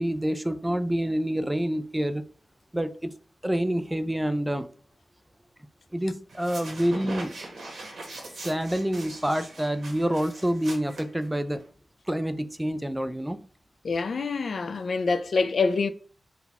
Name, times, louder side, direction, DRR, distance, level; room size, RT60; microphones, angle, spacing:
voice 1, 0.0-2.2 2.7-3.1 3.4-4.7 5.9-7.3 8.4-11.6 12.1-13.4, equal, 10° right, 0.3 m, -27 dB
sound 1, 6.3-11.7, right 2 dB, 85° right, 1.2 m, -41 dB
voice 2, 13.8-15.9, left 4 dB, 65° left, 0.3 m, -26 dB
4.0 x 2.3 x 4.0 m
wide cardioid pair, 75°, 0 cm